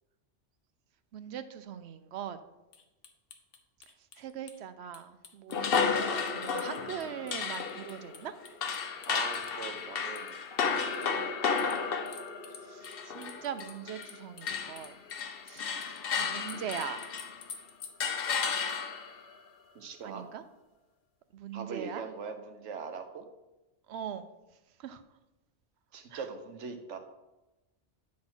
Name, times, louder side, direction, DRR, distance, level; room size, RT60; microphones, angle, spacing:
voice 1, 1.1-2.4 4.2-8.4 12.6-14.9 15.5-17.1 20.0-20.4 21.3-22.1 23.9-24.3 24.8-25.0 26.1-26.3, right 9 dB, 70° right, 11 dB, 0.8 m, -41 dB
sound 1, 2.7-4.6 4.9-5.8 6.3-9.5 10.1-10.5 10.9-11.1 11.6-13.0 13.2-16.0 16.5-17.9, left 6 dB, 90° left, 1.2 m, -50 dB
sound 2, 5.5-14.2 14.4-17.5 18.0-19.2, left 5 dB, 55° left, 0.9 m, -33 dB
voice 2, 9.1-11.7 19.7-20.3 21.5-23.2 25.9-27.0, right 5 dB, 90° right, 7 dB, 1.2 m, -42 dB
9.6 x 4.1 x 6.1 m, 1.0 s
omnidirectional pair, 1.2 m